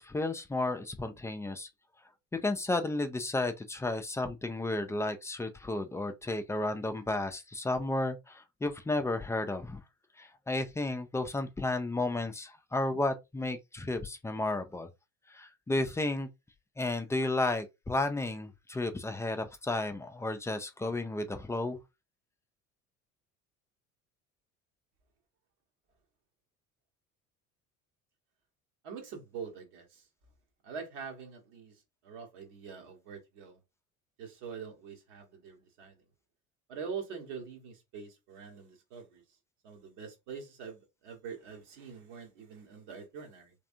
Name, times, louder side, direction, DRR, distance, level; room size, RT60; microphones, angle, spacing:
voice 1, 0.0-1.7 2.4-9.8 10.2-14.9 15.3-16.3 16.8-21.8, left 2 dB, 5° left, 0.4 m, -33 dB
voice 2, 28.8-30.0 30.6-31.8 32.0-33.6 34.2-36.0 36.7-39.2 39.6-43.5, right 6 dB, 55° right, 1.3 m, -44 dB
3.3 x 3.3 x 2.5 m
figure-of-eight pair, 60°, 41 cm